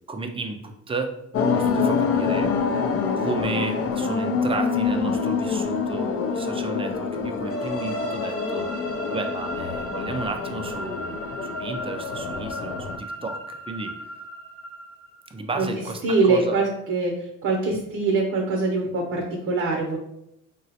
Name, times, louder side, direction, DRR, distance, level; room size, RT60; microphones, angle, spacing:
voice 1, 0.1-1.2 1.5-2.5 3.2-8.7 9.1-13.9 15.3-16.6, right 3 dB, 20° right, 5 dB, 0.4 m, -33 dB
sound 1, 1.3-13.0, left 5 dB, 50° left, 0.4 m, -26 dB
sound 2, 7.5-15.3, equal, 80° left, 1.0 m, -36 dB
voice 2, 16.0-20.0, right 3 dB, 50° right, 0 dB, 0.7 m, -23 dB
3.7 x 2.0 x 2.7 m, 0.81 s
cardioid pair, 90°, 30 cm